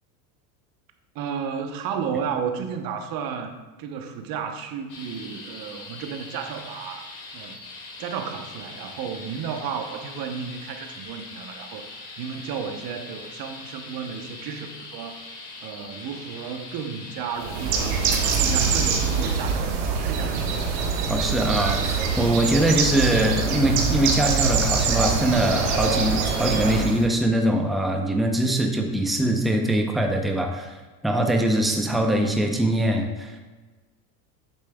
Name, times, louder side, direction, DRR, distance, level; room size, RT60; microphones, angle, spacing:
voice 1, 1.1-3.5 3.8-7.0 7.3-7.6 8.0-11.9 12.2-15.2 15.6-20.5, right 7 dB, 45° right, 6 dB, 1.0 m, -33 dB
sound 1, 4.9-19.4, left 3 dB, 40° left, 2.2 m, -41 dB
Bird, 17.4-27.1, right 5 dB, 70° right, 1.4 m, -24 dB
voice 2, 21.1-30.8 31.0-33.4, right 1 dB, ahead, 3 dB, 0.7 m, -23 dB
8.5 x 6.6 x 2.3 m, 1.2 s
supercardioid pair, 100°, 47 cm